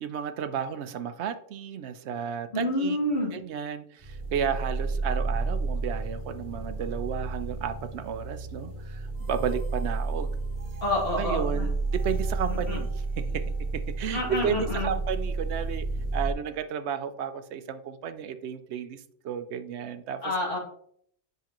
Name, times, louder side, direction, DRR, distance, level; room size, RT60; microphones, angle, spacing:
voice 1, 0.0-3.0 3.3-10.3 11.2-12.9 13.2-13.4 13.7-19.0 19.2-20.2, right 8 dB, 70° right, 10 dB, 0.9 m, -33 dB
voice 2, 2.5-3.3 10.8-11.7 12.5-12.8 14.1-14.9 20.2-20.6, left 1 dB, 50° left, -4 dB, 2.8 m, -28 dB
sound 1, 4.0-16.3, right 3 dB, 50° right, 2.6 m, -31 dB
8.0 x 5.9 x 3.0 m, 0.65 s
omnidirectional pair, 1.3 m